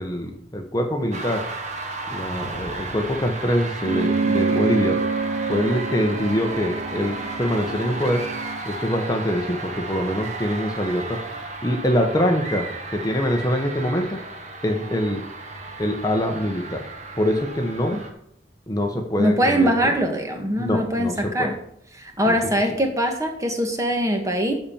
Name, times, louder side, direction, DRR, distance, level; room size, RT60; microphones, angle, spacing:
voice 1, 0.0-1.5 2.1-5.0 5.5-8.2 8.6-11.2 11.6-14.2 14.6-15.2 15.8-16.9 17.1-18.0 18.7-19.7 20.6-21.5 22.3-22.4, equal, 20° left, 4 dB, 1.1 m, -24 dB
sound 1, 1.1-18.1, right 2 dB, 40° right, 1.6 m, -34 dB
sound 2, 3.8-8.6, right 4 dB, 60° right, 0.5 m, -27 dB
voice 2, 19.2-21.5 21.9-24.5, equal, 20° right, 3 dB, 1.5 m, -22 dB
12.5 x 4.4 x 7.2 m, 0.72 s
head